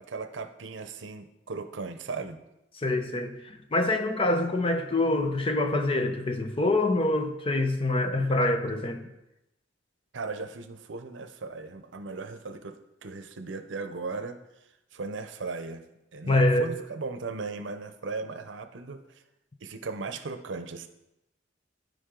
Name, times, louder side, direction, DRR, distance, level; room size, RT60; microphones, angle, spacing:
voice 1, 0.0-2.4 10.1-14.4 14.9-15.8 16.1-19.0 19.6-20.9, right 4 dB, 75° right, 0.6 m, -37 dB
voice 2, 2.7-9.1 16.2-16.7, left 2 dB, 30° left, 0.7 m, -25 dB
11.5 x 5.2 x 3.8 m
head